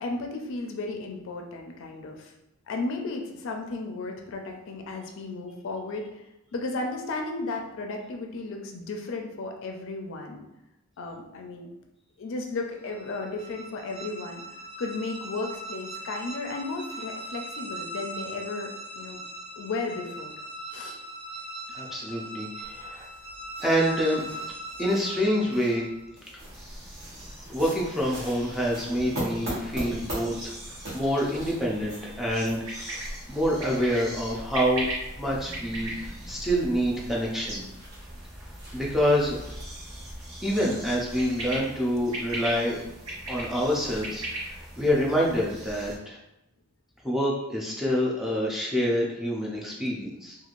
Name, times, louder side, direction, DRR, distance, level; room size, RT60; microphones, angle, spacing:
voice 1, 0.0-2.3 2.7-6.2 6.5-10.4 11.0-11.7 12.2-14.4 14.8-19.2 19.6-20.3 20.7-21.0, left 3 dB, 60° left, 2 dB, 0.4 m, -34 dB
sound 1, 12.7-26.1, right 1 dB, 25° right, 1.0 m, -40 dB
voice 2, 21.7-23.1 23.6-24.2 24.8-25.8 26.3-26.4 27.5-30.5 30.9-33.0 33.3-34.9 35.2-37.6 38.7-39.4 40.4-42.8 43.3-46.2 47.0-50.4, equal, ahead, -4 dB, 0.4 m, -27 dB
sound 2, 22.6-40.2, right 1 dB, 50° right, 1.0 m, -42 dB
sound 3, 26.4-46.0, right 1 dB, 80° right, 0.9 m, -39 dB
3.0 x 2.4 x 2.5 m, 0.89 s
head